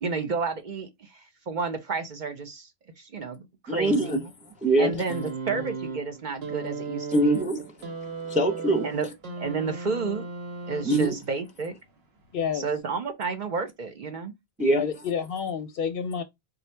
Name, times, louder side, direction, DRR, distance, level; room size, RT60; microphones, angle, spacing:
voice 1, 0.0-2.7 3.0-4.2 4.8-7.4 8.8-9.1 9.4-10.3 10.7-11.7 12.5-14.3, right 4 dB, 50° right, 0.7 m, -31 dB
voice 2, 3.7-5.0 7.1-7.9 8.2-8.9 10.8-11.2 14.6-14.9, right 1 dB, 10° right, 0.4 m, -24 dB
sound 1, 5.1-11.3 12.3-12.4, right 4 dB, 75° right, 1.1 m, -36 dB
voice 3, 12.3-12.7 14.7-16.2, left 7 dB, 65° left, 0.7 m, -30 dB
3.8 x 2.4 x 4.2 m
omnidirectional pair, 1.1 m